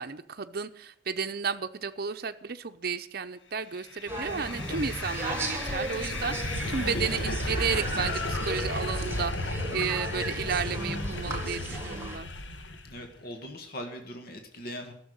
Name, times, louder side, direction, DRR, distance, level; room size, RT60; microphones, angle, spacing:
voice 1, 0.0-12.3, right 6 dB, 55° right, 7 dB, 0.7 m, -33 dB
sound 1, 3.8-13.0, left 2 dB, 80° left, 1.3 m, -34 dB
sound 2, 4.1-9.4, equal, 5° left, 2.3 m, -42 dB
sound 3, 4.1-12.2, right 2 dB, 15° right, 1.6 m, -37 dB
voice 2, 12.8-14.9, equal, 55° left, 4 dB, 1.7 m, -40 dB
12.0 x 7.0 x 9.4 m, 0.68 s
head